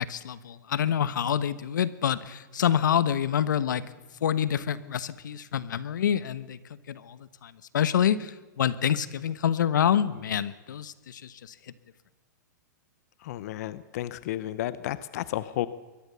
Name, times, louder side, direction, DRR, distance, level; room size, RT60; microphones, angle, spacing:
voice 1, 0.0-3.8 4.2-6.6 6.9-11.5, left 9 dB, 80° left, 16 dB, 1.1 m, -27 dB
voice 2, 13.2-15.7, left 14 dB, 55° left, 15 dB, 0.9 m, -32 dB
22.5 x 17.5 x 6.9 m, 1.2 s
hypercardioid pair, 135°, 10 cm